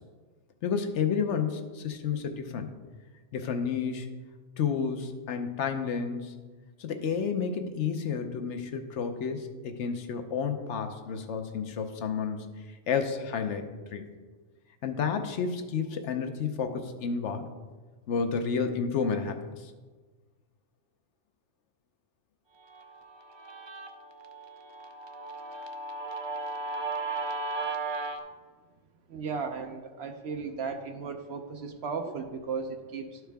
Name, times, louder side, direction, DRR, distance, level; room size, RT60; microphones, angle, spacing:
voice 1, 0.6-2.7 3.3-4.1 4.6-6.3 6.8-12.5 12.9-14.1 14.8-17.4 18.1-19.7, left 6 dB, 70° left, 7 dB, 1.0 m, -31 dB
Guitar, 22.7-28.2, right 3 dB, 40° right, 0.4 m, -36 dB
voice 2, 29.1-33.2, right 5 dB, 65° right, 5 dB, 0.9 m, -35 dB
12.0 x 4.7 x 3.4 m, 1.4 s
omnidirectional pair, 1.3 m